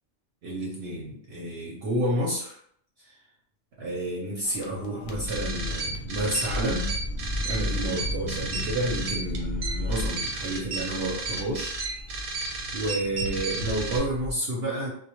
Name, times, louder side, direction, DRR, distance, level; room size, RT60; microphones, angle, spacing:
voice 1, 0.4-2.6 3.1-3.2 3.8-6.9 7.4-11.7 12.7-14.9, right 1 dB, 65° right, -4 dB, 0.7 m, -30 dB
sound 1, 4.4-14.3, left 1 dB, 65° left, 0.7 m, -35 dB
sound 2, 5.3-14.0, right 3 dB, 85° right, 1.0 m, -33 dB
2.2 x 2.0 x 2.8 m, 0.65 s
omnidirectional pair, 1.3 m